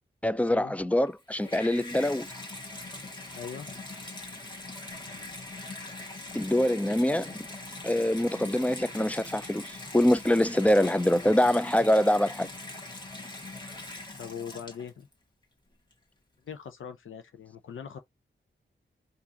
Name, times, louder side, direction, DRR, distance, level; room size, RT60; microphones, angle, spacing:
voice 1, 0.2-2.3 6.3-7.5 7.8-12.5, left 1 dB, 5° left, 0.4 m, -24 dB
Water tap faucet / Bathtub (filling or washing), 1.1-15.1 15.9-16.0, left 2 dB, 20° left, 1.5 m, -42 dB
voice 2, 3.3-3.7 5.0-5.2 14.2-15.1 16.5-18.0, left 7 dB, 85° left, 0.6 m, -41 dB
4.7 x 2.6 x 2.8 m
wide cardioid pair, 100°, 20 cm